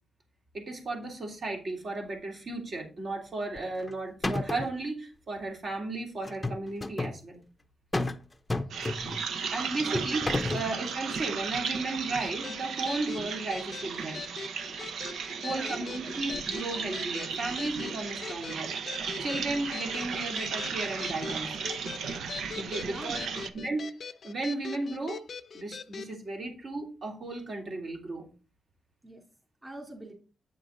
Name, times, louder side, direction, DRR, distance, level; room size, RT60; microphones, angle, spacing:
voice 1, 0.5-7.4 9.5-14.3 15.4-18.7 19.2-21.5 22.5-23.2 23.5-23.9 24.2-25.2 25.5-28.3, right 2 dB, 50° right, 1 dB, 3.1 m, -34 dB
sound 1, 3.6-3.9 4.2-4.8 6.2-7.2 7.9-8.2 8.5-9.3 9.9-10.7, left 2 dB, 15° left, 0.7 m, -31 dB
sound 2, 8.7-23.5, right 6 dB, 90° right, 0.8 m, -35 dB
sound 3, 12.4-26.1, left 5 dB, 45° left, 0.5 m, -42 dB
voice 2, 15.4-16.1 22.8-23.8 29.0-29.2 29.6-30.1, right 1 dB, 15° right, 1 dB, 3.5 m, -44 dB
8.8 x 6.1 x 3.9 m, 0.34 s
wide cardioid pair, 135°, 0 cm